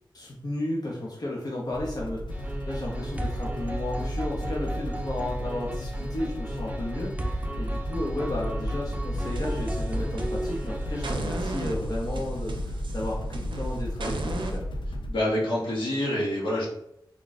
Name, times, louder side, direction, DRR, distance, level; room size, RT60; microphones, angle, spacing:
voice 1, 0.1-14.6, left 1 dB, 50° left, -3 dB, 0.8 m, -33 dB
sound 1, 1.7-15.1, equal, 70° left, 0.5 m, -34 dB
sound 2, 2.3-11.5, right 1 dB, 20° right, 0.5 m, -34 dB
sound 3, 9.2-10.6 11.0-14.6, right 2 dB, 85° right, 0.6 m, -37 dB
voice 2, 15.1-16.7, left 1 dB, 90° left, -6 dB, 1.5 m, -26 dB
3.5 x 2.4 x 4.0 m, 0.76 s
wide cardioid pair, 70°, 8 cm